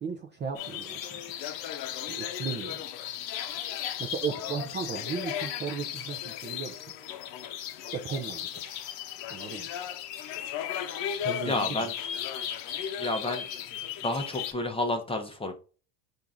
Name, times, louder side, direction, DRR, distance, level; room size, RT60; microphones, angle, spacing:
voice 1, 0.0-1.2 2.1-2.9 4.0-6.8 7.9-8.7 9.3-9.7 11.2-11.9, right 6 dB, 25° right, 0.4 m, -36 dB
sound 1, 0.5-14.5, left 10 dB, 60° left, 0.8 m, -36 dB
voice 2, 11.4-11.9 13.0-13.4 14.0-15.5, left 2 dB, 10° left, 0.7 m, -30 dB
4.5 x 2.7 x 3.5 m
supercardioid pair, 110°, 49 cm